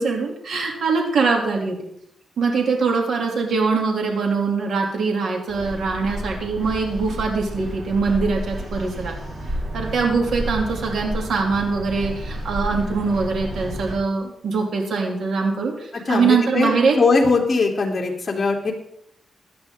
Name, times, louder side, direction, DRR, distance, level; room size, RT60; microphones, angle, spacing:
voice 1, 0.0-1.8 2.4-9.1 9.7-17.0, right 4 dB, 75° right, 1 dB, 3.0 m, -22 dB
sound 1, 5.5-14.0, right 1 dB, 40° right, 6.6 m, -31 dB
voice 2, 16.1-16.7 17.0-18.7, left 3 dB, 35° left, -1 dB, 3.4 m, -20 dB
17.0 x 11.5 x 3.9 m, 0.75 s
wide cardioid pair, 120°, 0 cm